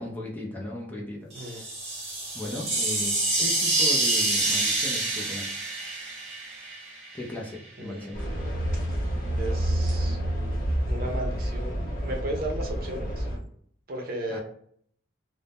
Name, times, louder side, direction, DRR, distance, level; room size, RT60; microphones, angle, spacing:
voice 1, 0.0-1.7 2.3-5.5 7.1-8.2 14.3-14.4, left 1 dB, 10° left, -3 dB, 0.5 m, -37 dB
sound 1, 1.3-7.2, right 2 dB, 35° right, 1.1 m, -27 dB
sound 2, 8.1-13.4, right 1 dB, 50° left, 0.8 m, -28 dB
voice 2, 9.4-10.2 10.9-11.8 12.0-13.3 13.9-14.4, right 1 dB, 50° right, 2 dB, 0.7 m, -34 dB
2.6 x 2.1 x 3.4 m, 0.62 s
head